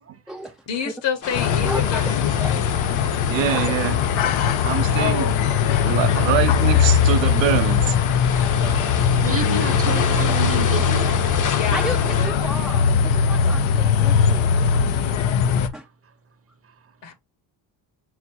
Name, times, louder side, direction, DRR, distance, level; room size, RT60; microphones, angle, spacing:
voice 1, 0.7-2.7 4.9-5.4 9.3-9.9 11.5-12.0 17.0-17.1, left 7 dB, 70° left, 1.4 m, -29 dB
sound 1, 1.2-12.3, left 6 dB, 45° left, 0.7 m, -29 dB
sound 2, 1.3-15.7, left 7 dB, 85° left, 0.6 m, -20 dB
voice 2, 1.6-2.7 3.5-3.7 11.7-14.5 15.0-15.8, right 1 dB, ahead, 0.3 m, -33 dB
voice 3, 3.3-4.0 4.6-5.4 5.8-8.0, right 11 dB, 75° right, 0.8 m, -24 dB
voice 4, 9.2-11.0 13.3-13.4 13.8-13.9 15.3-15.4, right 4 dB, 30° right, 0.7 m, -30 dB
5.7 x 2.3 x 2.7 m
cardioid pair, 110°, 45 cm